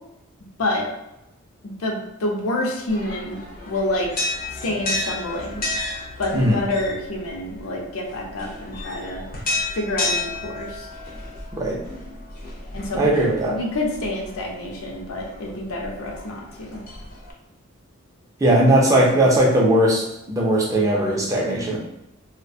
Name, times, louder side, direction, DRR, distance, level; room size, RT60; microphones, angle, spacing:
voice 1, 0.6-0.9 1.8-3.4 3.7-4.1 4.6-5.6 6.2-9.3 9.7-10.9 12.7-13.1 13.5-16.8, left 1 dB, 90° left, 1 dB, 0.5 m, -27 dB
sound 1, 2.9-17.3, left 2 dB, 40° left, 0.4 m, -32 dB
voice 2, 6.3-6.7 11.5-11.8 12.9-13.6 18.4-21.8, right 1 dB, 15° right, -3 dB, 0.4 m, -19 dB
2.4 x 2.1 x 2.5 m, 0.89 s
head